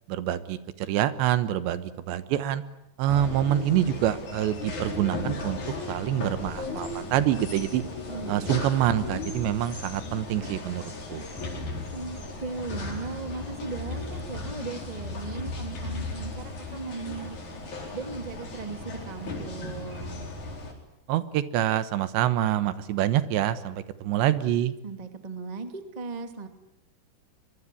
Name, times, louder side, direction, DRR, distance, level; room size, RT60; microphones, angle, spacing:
voice 1, 0.1-2.6 3.0-5.6 5.9-7.8 8.3-10.8 11.1-11.3 21.1-24.7, right 12 dB, 85° right, 13 dB, 3.5 m, -26 dB
sound 1, 3.1-20.7, left 2 dB, 45° left, 5.5 m, -36 dB
voice 2, 8.1-8.6 11.9-17.6 17.9-20.2 24.8-26.5, right 4 dB, 20° right, 7 dB, 1.0 m, -37 dB
24.0 x 23.5 x 9.9 m, 0.84 s
omnidirectional pair, 4.9 m